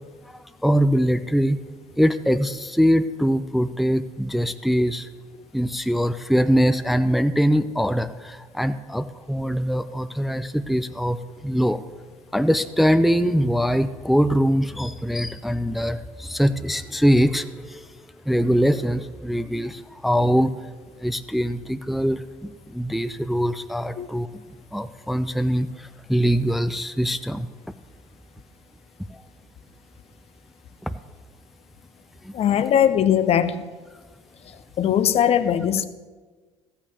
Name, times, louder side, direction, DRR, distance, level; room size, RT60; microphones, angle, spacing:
voice 1, 0.6-1.6 2.0-5.1 5.5-11.8 12.3-17.8 18.3-20.5 21.0-24.4 24.7-27.5 30.9-31.0 32.2-32.3, equal, ahead, 12 dB, 0.5 m, -22 dB
voice 2, 32.3-33.6 34.8-35.8, left 9 dB, 45° left, 13 dB, 0.7 m, -20 dB
15.0 x 5.8 x 6.6 m, 1.3 s
figure-of-eight pair, 55°, 15 cm